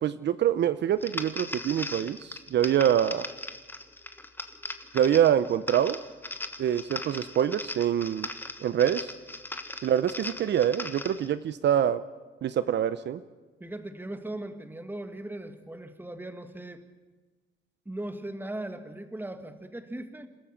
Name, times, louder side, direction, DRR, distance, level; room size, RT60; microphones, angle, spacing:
voice 1, 0.0-3.3 4.9-6.0 6.6-8.3 8.6-9.1 9.8-12.0 12.4-13.2, right 10 dB, 60° right, 13 dB, 0.7 m, -25 dB
sound 1, 1.0-11.3, left 2 dB, 10° left, 1.5 m, -39 dB
voice 2, 13.6-16.8 17.9-20.3, right 1 dB, 10° right, 8 dB, 1.9 m, -38 dB
27.5 x 13.5 x 7.5 m, 1.3 s
cardioid pair, 90°, 20 cm